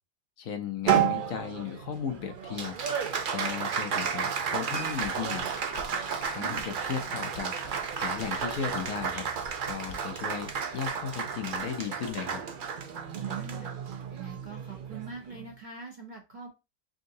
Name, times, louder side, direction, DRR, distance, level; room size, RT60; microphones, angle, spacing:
voice 1, 0.4-2.8 3.3-5.6 6.3-7.5 8.0-9.3 9.6-12.4, left 7 dB, 70° left, 0.9 m, -35 dB
Applause, 0.9-15.5, right 7 dB, 85° right, 0.4 m, -32 dB
sound 1, 4.7-11.0 11.5-11.7 12.1-12.3, left 5 dB, 90° left, 1.3 m, -48 dB
voice 2, 13.2-13.7 14.1-16.5, right 5 dB, 40° right, 0.8 m, -43 dB
3.8 x 3.7 x 2.6 m
omnidirectional pair, 1.6 m